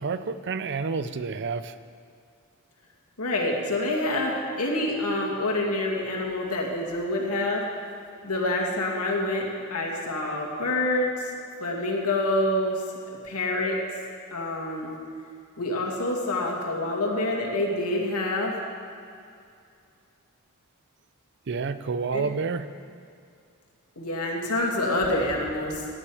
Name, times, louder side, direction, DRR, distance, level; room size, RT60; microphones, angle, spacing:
voice 1, 0.0-1.7 21.5-22.7, right 4 dB, 55° right, 12 dB, 0.5 m, -29 dB
voice 2, 3.2-7.6 8.2-11.3 11.6-12.8 13.2-13.8 14.3-15.0 15.6-18.5 22.1-22.3 24.0-25.9, left 1 dB, 85° left, -1 dB, 2.3 m, -27 dB
17.0 x 10.0 x 5.0 m, 2.4 s
head